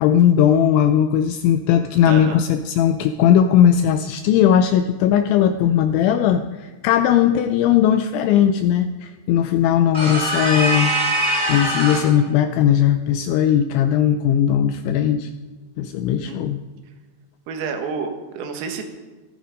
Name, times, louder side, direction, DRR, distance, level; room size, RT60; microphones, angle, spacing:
voice 1, 0.0-10.9 11.5-15.3 15.8-16.6, left 9 dB, 85° left, 9 dB, 2.7 m, -18 dB
voice 2, 2.1-2.4 16.2-16.4 17.5-18.8, right 5 dB, 80° right, 5 dB, 4.2 m, -29 dB
sound 1, 9.9-12.2, right 1 dB, 45° right, 0.7 m, -22 dB
16.0 x 14.5 x 5.2 m, 1.3 s
omnidirectional pair, 5.9 m